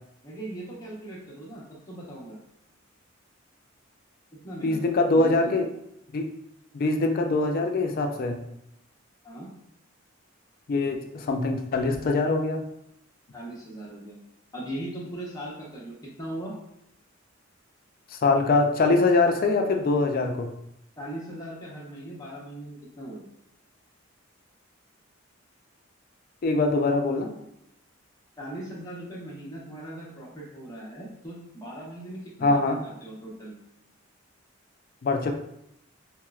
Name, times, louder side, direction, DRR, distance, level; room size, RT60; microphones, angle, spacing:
voice 1, 0.2-2.4 4.3-4.8 5.1-5.6 9.2-9.5 13.3-14.1 14.5-16.5 21.0-23.2 28.4-33.5, right 1 dB, 20° left, -5 dB, 0.9 m, -39 dB
voice 2, 4.6-5.7 6.1-6.3 6.7-8.4 10.7-12.6 18.1-20.5 26.4-27.3 32.4-32.8 35.0-35.3, left 3 dB, 45° left, 4 dB, 0.4 m, -23 dB
4.2 x 2.0 x 2.3 m, 0.79 s
head